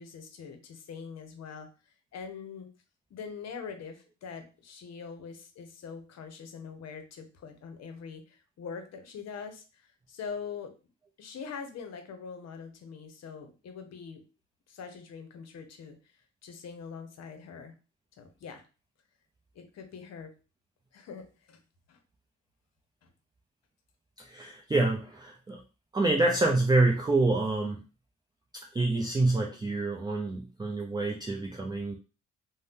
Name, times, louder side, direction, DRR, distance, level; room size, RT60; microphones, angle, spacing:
voice 1, 0.0-2.7 3.1-10.7 11.2-14.2 14.7-16.0 16.4-17.7 18.2-18.6 19.5-20.3 20.9-21.6 21.9-22.0 23.0-23.1, left 6 dB, 60° left, 7 dB, 0.8 m, -43 dB
voice 2, 24.2-25.6 25.9-27.8 28.7-32.0, right 2 dB, 15° right, 0 dB, 0.4 m, -27 dB
2.6 x 2.1 x 3.5 m, 0.32 s
cardioid pair, 90°, 30 cm